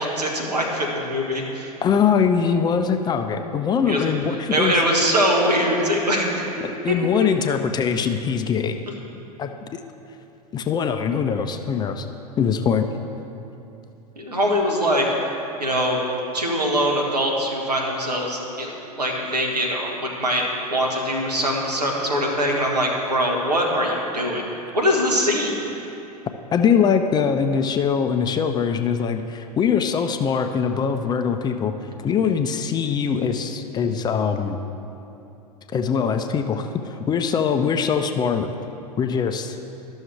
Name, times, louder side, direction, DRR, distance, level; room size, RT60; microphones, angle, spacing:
voice 1, 0.0-1.7 3.9-4.0 4.3-6.3 6.9-7.3 14.2-15.1 15.6-16.0 16.3-20.4 20.7-24.4 24.7-25.6, equal, 85° right, 0 dB, 1.3 m, -22 dB
voice 2, 1.8-4.8 6.8-8.8 9.4-9.8 10.5-12.1 12.4-12.9 26.5-31.7 32.0-34.6 35.7-38.5 39.0-39.6, left 6 dB, 20° left, 7 dB, 0.4 m, -22 dB
12.5 x 6.2 x 3.3 m, 2.9 s
figure-of-eight pair, 95°, 20 cm